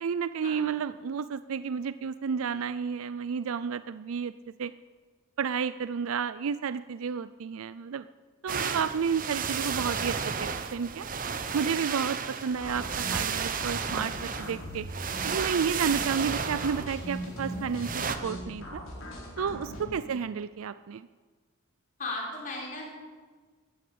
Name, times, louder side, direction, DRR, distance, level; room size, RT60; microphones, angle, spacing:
voice 1, 0.0-4.3 4.6-4.7 5.4-8.1 8.4-11.1 11.5-14.9 15.2-18.8 19.4-21.0, right 6 dB, 75° right, 14 dB, 0.4 m, -31 dB
sound 1, 8.5-18.2, right 6 dB, 40° right, 0.9 m, -33 dB
sound 2, 12.6-19.8, equal, 70° left, 4.4 m, -40 dB
voice 2, 19.8-20.3 22.0-22.9, left 2 dB, 35° left, -2 dB, 4.8 m, -38 dB
14.0 x 11.5 x 8.5 m, 1.4 s
head